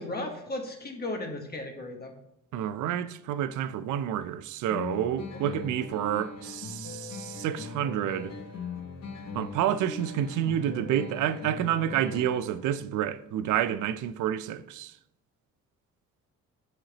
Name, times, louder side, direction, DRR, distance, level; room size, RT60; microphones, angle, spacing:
voice 1, 0.0-2.1 5.3-5.6, left 2 dB, 30° left, 1.2 m, -36 dB
voice 2, 2.5-8.3 9.3-14.9, right 10 dB, 80° right, 0.5 m, -29 dB
sound 1, 4.7-12.7, left 4 dB, 60° left, 1.2 m, -40 dB
7.5 x 4.4 x 2.9 m
cardioid pair, 90°, 30 cm